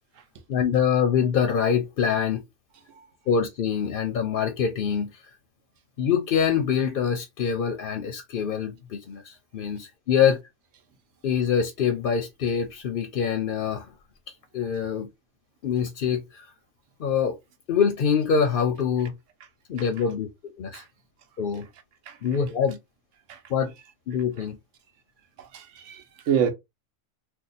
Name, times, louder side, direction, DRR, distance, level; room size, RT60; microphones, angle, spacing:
voice 1, 0.5-2.4 3.3-5.2 6.0-10.4 11.2-13.9 14.5-15.1 15.6-16.5 17.0-17.4 17.7-19.1 19.7-20.3 20.6-20.8 21.4-21.7 22.2-22.8 23.5-23.7 24.1-24.6, left 7 dB, 55° left, 0.7 m, -25 dB
voice 2, 25.4-26.5, right 8 dB, 80° right, 1.0 m, -27 dB
2.8 x 2.2 x 3.9 m
omnidirectional pair, 1.3 m